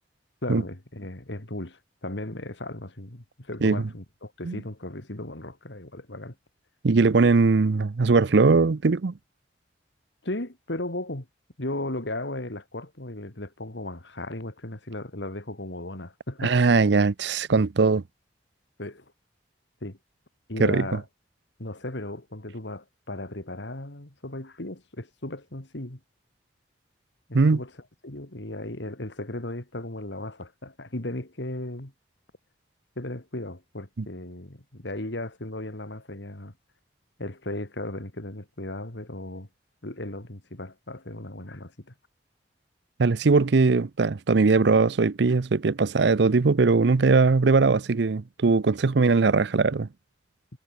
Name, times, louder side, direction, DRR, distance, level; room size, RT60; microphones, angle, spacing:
voice 1, 0.4-6.4 10.2-11.3 11.6-16.5 18.8-19.0 19.8-20.0 20.5-21.0 21.6-26.0 27.3-27.7 28.0-31.9 33.0-36.5 37.2-39.5 39.8-41.9, left 1 dB, 70° left, 2.7 m, -36 dB
voice 2, 6.8-9.1 16.4-18.0 20.6-21.0 27.3-27.6 34.0-34.1 43.0-49.9, right 4 dB, 65° right, 0.6 m, -20 dB
head